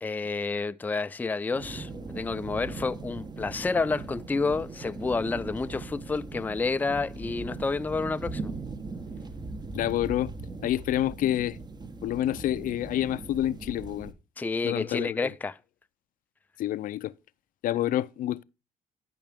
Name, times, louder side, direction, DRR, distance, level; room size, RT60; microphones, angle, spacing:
voice 1, 0.0-8.5 14.4-15.6, left 4 dB, 10° left, 0.4 m, -29 dB
sound 1, 1.5-14.1, right 3 dB, 30° right, 1.1 m, -39 dB
voice 2, 9.7-10.3 10.6-11.6 12.0-14.1 14.6-15.3 16.6-17.1 17.6-18.4, left 13 dB, 70° left, 0.5 m, -28 dB
12.0 x 5.9 x 3.5 m
cardioid pair, 85°, 15 cm